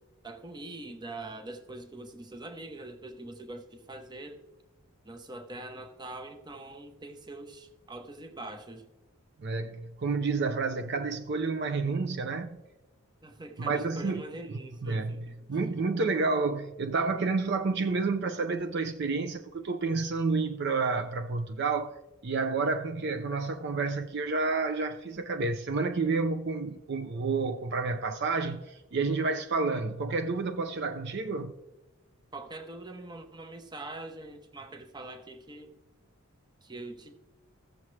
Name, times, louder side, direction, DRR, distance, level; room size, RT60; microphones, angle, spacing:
voice 1, 0.2-4.4 5.0-8.9 13.2-15.4 32.3-35.7 36.6-37.1, right 2 dB, 20° right, 0.7 m, -43 dB
voice 2, 9.4-12.6 13.6-14.2 14.8-31.6, right 4 dB, 50° right, 0.5 m, -30 dB
15.5 x 7.2 x 3.2 m
head